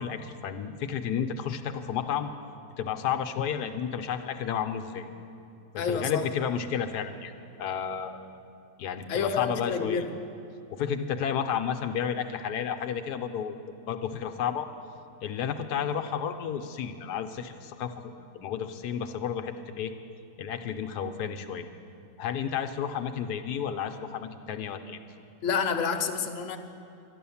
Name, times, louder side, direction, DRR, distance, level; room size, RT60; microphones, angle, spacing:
voice 1, 0.0-2.3 2.8-5.1 5.7-7.3 7.6-8.4 8.8-10.3 10.7-13.5 13.9-14.7 15.2-19.9 20.4-21.7 22.2-25.0, left 8 dB, 75° left, 7 dB, 1.1 m, -32 dB
voice 2, 5.8-6.3 9.1-10.1 25.4-26.6, left 6 dB, 55° left, 5 dB, 1.0 m, -28 dB
12.0 x 11.0 x 7.0 m, 2.6 s
omnidirectional pair, 1.9 m